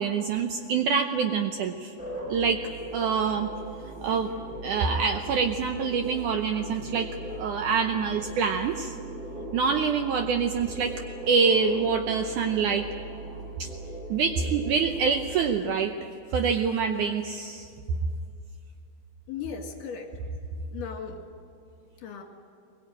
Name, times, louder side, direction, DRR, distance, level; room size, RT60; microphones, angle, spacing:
voice 1, 0.0-1.9 2.3-2.6 2.9-3.5 4.0-4.3 4.6-8.9 9.5-10.9 11.3-12.9 13.6-13.7 14.1-15.9 16.3-17.7, right 6 dB, 75° right, 5 dB, 2.0 m, -26 dB
sound 1, 2.0-15.6, right 1 dB, 15° right, 4.9 m, -39 dB
voice 2, 19.3-20.1 20.7-21.2 22.0-22.2, left 7 dB, 65° left, 2 dB, 3.6 m, -36 dB
21.5 x 21.0 x 8.9 m, 2.4 s
omnidirectional pair, 4.4 m